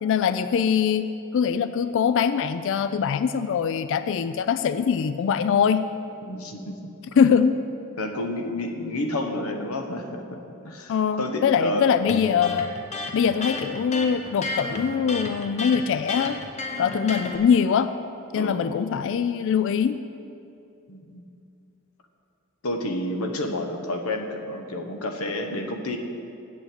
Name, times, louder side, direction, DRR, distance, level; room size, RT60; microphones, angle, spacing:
voice 1, 0.0-5.9 7.2-7.6 10.9-12.7 13.1-16.4 16.8-17.9 18.3-20.0, left 7 dB, 60° left, 12 dB, 0.3 m, -22 dB
voice 2, 6.2-6.8 8.0-10.4 10.6-11.9 18.3-18.9 20.9-21.2 22.6-26.0, left 1 dB, 80° left, 5 dB, 1.0 m, -30 dB
Electric guitar, 12.1-17.4, left 2 dB, 30° left, 0.9 m, -32 dB
7.8 x 7.3 x 8.1 m, 2.7 s
head